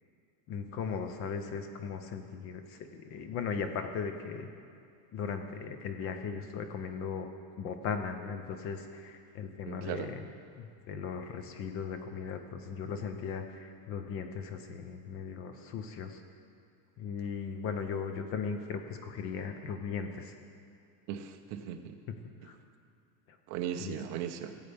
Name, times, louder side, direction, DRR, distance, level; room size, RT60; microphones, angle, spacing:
voice 1, 0.5-4.5 5.1-7.3 7.6-10.3 10.6-16.2 17.0-20.3 22.4-22.6 23.8-24.0, left 6 dB, 30° left, 7 dB, 0.6 m, -37 dB
voice 2, 9.6-10.1 21.1-22.0 23.5-24.6, right 9 dB, 35° right, 5 dB, 0.6 m, -37 dB
16.5 x 8.0 x 3.4 m, 2.5 s
supercardioid pair, 160°, 48 cm